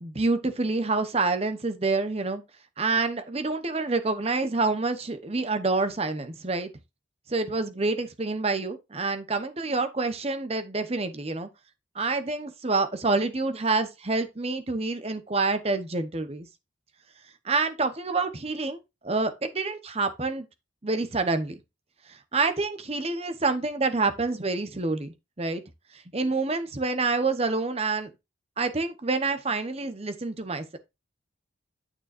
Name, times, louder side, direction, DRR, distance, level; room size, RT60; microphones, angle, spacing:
voice 1, 0.0-2.4 2.8-6.7 7.3-11.5 12.0-16.5 17.4-18.8 19.0-20.5 20.8-21.5 22.3-25.6 26.1-28.1 28.6-30.8, right 3 dB, 30° right, 0.9 m, -27 dB
9.0 x 6.9 x 2.5 m
head